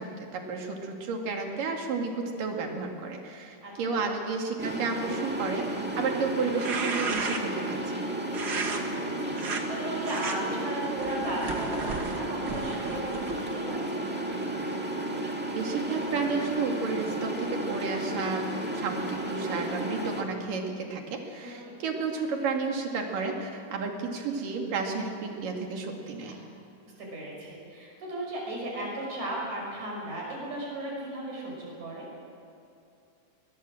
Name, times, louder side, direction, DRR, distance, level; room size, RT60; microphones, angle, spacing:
voice 1, 0.0-8.0 15.5-18.4 18.7-26.4, right 4 dB, 85° right, 2 dB, 3.9 m, -32 dB
voice 2, 3.6-4.0 8.6-14.0 21.4-21.6 27.0-32.1, right 1 dB, 60° right, -3 dB, 7.1 m, -36 dB
sound 1, 4.6-20.2, right 1 dB, 5° right, 1.4 m, -33 dB
sound 2, 6.4-7.6 8.3-8.8 9.3-9.6 10.0-10.4 11.0-13.6, right 4 dB, 40° right, 1.6 m, -34 dB
21.5 x 21.0 x 7.7 m, 2.6 s
omnidirectional pair, 3.7 m